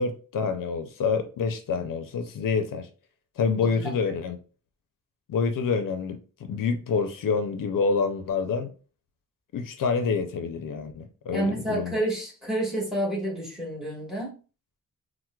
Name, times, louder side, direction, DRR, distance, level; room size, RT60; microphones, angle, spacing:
voice 1, 0.0-2.9 3.4-4.4 5.3-8.7 9.5-11.9, left 5 dB, 75° left, 0.5 m, -27 dB
voice 2, 11.3-14.4, right 1 dB, ahead, 1.3 m, -29 dB
4.3 x 2.1 x 2.2 m
wide cardioid pair, 165°, 33 cm